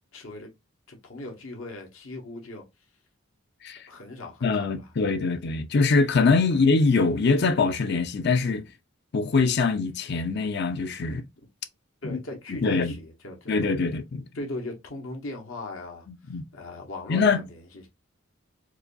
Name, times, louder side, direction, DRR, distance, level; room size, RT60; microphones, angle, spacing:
voice 1, 0.1-0.5 0.9-2.6 3.9-4.9 5.2-5.3 6.5-6.6 11.0-11.5 12.0-13.7 14.3-16.1 16.5-17.9, left 2 dB, 75° left, 1.2 m, -39 dB
voice 2, 4.4-8.7 9.1-11.2 12.0-12.2 12.6-12.9 13.5-14.2 16.3-16.4 17.1-17.4, left 4 dB, 50° left, 0.5 m, -23 dB
4.7 x 2.3 x 2.5 m
head